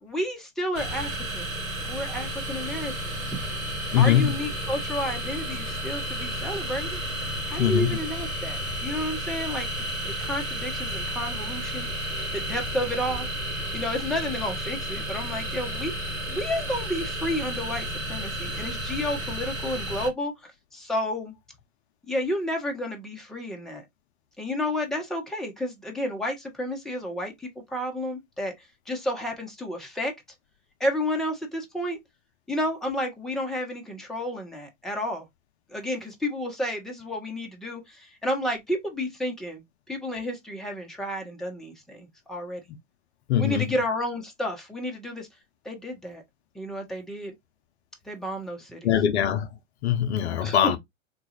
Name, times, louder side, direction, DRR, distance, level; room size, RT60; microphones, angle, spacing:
voice 1, 0.0-1.5 1.8-3.4 4.0-7.0 7.5-11.9 12.3-13.3 13.7-21.3 22.1-23.8 24.4-30.1 30.8-32.0 32.5-35.2 35.7-39.6 39.9-42.6 43.4-45.3 45.6-46.2 46.5-47.3 48.1-48.9 50.4-50.8, left 1 dB, ahead, 0.8 m, -31 dB
sound 1, 0.7-20.1, right 1 dB, 85° right, 1.5 m, -32 dB
voice 2, 3.9-4.4 7.6-8.0 43.3-43.6 48.8-49.5 49.8-50.8, left 10 dB, 55° left, 0.6 m, -22 dB
3.8 x 2.4 x 2.8 m
figure-of-eight pair, 100°, 40 cm